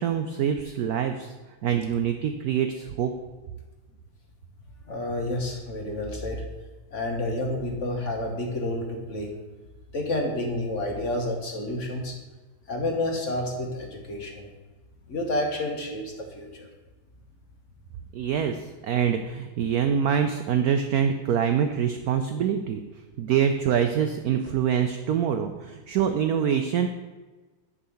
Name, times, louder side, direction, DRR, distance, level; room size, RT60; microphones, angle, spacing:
voice 1, 0.0-1.3 1.6-3.1 18.1-22.8 23.2-26.9, right 8 dB, 85° right, 7 dB, 0.8 m, -25 dB
voice 2, 4.9-6.4 6.9-9.3 9.9-12.1 12.7-14.5 15.1-16.7, left 1 dB, 45° left, 1 dB, 1.2 m, -29 dB
9.6 x 3.8 x 7.0 m, 1.2 s
omnidirectional pair, 2.1 m